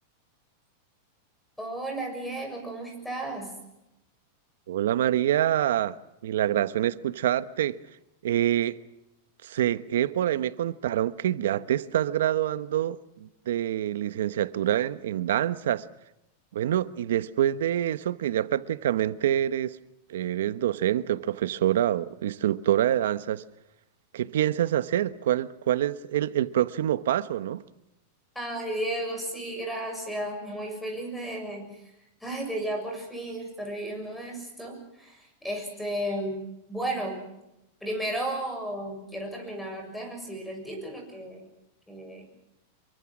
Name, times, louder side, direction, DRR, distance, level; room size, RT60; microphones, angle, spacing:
voice 1, 1.6-3.5 28.3-31.8 32.2-36.4 36.7-37.2 37.8-41.4 41.9-42.3, right 1 dB, 5° left, 6.8 m, -34 dB
voice 2, 4.7-6.0 6.2-7.8 8.2-8.8 9.4-15.9 16.5-19.8 20.1-23.4 24.1-27.6, right 11 dB, 80° right, 1.1 m, -26 dB
26.5 x 24.0 x 6.2 m
supercardioid pair, 150°, 0 cm